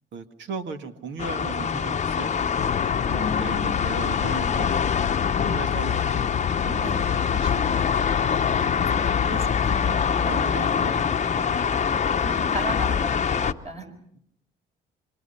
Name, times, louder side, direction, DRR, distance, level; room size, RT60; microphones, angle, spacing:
voice 1, 0.1-2.5 3.4-4.8 5.4-7.8 9.7-11.0 11.4-12.1 13.8-14.2, right 5 dB, 70° right, 2.0 m, -38 dB
sound 1, 1.2-13.5, left 7 dB, 35° left, 0.9 m, -24 dB
sound 2, 2.6-10.1, left 10 dB, 65° left, 0.9 m, -30 dB
voice 2, 3.0-3.7 6.8-7.2 8.4-9.0 9.3-10.1 12.0-13.9, equal, 30° right, 5.6 m, -36 dB
26.5 x 25.5 x 5.7 m
cardioid pair, 90°, 20 cm